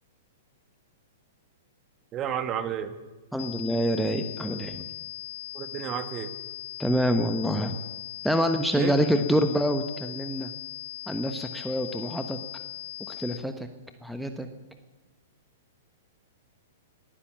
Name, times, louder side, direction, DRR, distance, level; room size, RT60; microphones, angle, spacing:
voice 1, 2.1-2.9 5.5-6.3 8.7-9.2, right 9 dB, 30° right, 11 dB, 1.4 m, -31 dB
voice 2, 3.3-4.9 6.8-7.8 8.2-10.5 11.1-12.4 13.1-13.7 14.0-14.5, equal, ahead, 7 dB, 1.1 m, -26 dB
sound 1, 3.4-13.4, left 14 dB, 55° left, 0.7 m, -39 dB
18.5 x 10.0 x 7.5 m, 1.2 s
hypercardioid pair, 110°, 0 cm